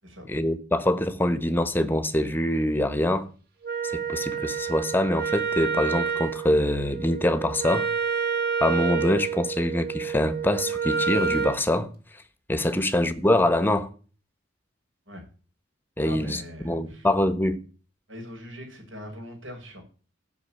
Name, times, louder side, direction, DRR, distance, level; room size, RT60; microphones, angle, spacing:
voice 1, 0.3-3.3 3.8-7.9 8.6-11.9 12.5-13.9 16.0-17.6, left 1 dB, 10° left, 1.1 m, -24 dB
Wind instrument woodwind instrument, 3.6-11.6, right 6 dB, 50° right, 2.8 m, -29 dB
voice 2, 16.0-17.1 18.1-19.8, equal, 70° right, 6.5 m, -41 dB
15.5 x 6.3 x 9.3 m
head